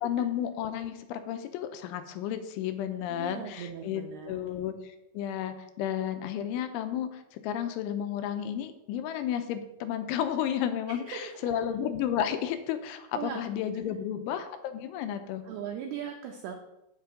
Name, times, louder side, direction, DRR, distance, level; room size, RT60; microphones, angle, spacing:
voice 1, 0.0-15.5, left 10 dB, 90° left, 8 dB, 3.2 m, -32 dB
voice 2, 3.1-4.4 10.9-11.5 13.1-13.4 13.8-14.1 15.4-16.5, right 8 dB, 85° right, 3 dB, 2.2 m, -39 dB
8.2 x 7.7 x 5.1 m, 0.87 s
omnidirectional pair, 5.5 m